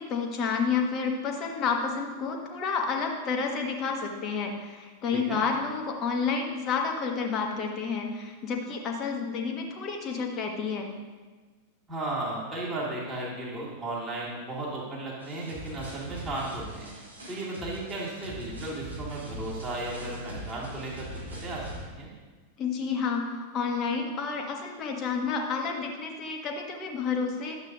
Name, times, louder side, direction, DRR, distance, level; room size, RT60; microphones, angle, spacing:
voice 1, 0.0-10.9 22.6-27.5, left 5 dB, 30° left, 2 dB, 1.4 m, -30 dB
voice 2, 5.1-5.4 11.9-16.9 17.3-21.1 21.4-21.6 21.9-22.1, right 2 dB, 20° right, -6 dB, 2.6 m, -35 dB
sound 1, 15.2-21.8, equal, 75° right, 2.3 m, -41 dB
12.0 x 7.9 x 2.7 m, 1.3 s
figure-of-eight pair, 90°, 0 cm